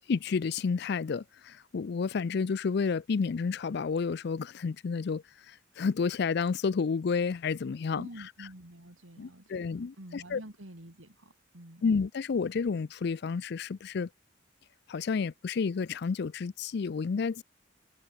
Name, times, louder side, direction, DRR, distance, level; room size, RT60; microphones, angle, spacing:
voice 1, 0.1-8.1 8.4-8.5 9.2-10.4 11.8-14.1 14.9-17.4, left 5 dB, 55° left, 0.4 m, -30 dB
voice 2, 7.9-11.9, right 1 dB, 90° right, 3.6 m, -48 dB
head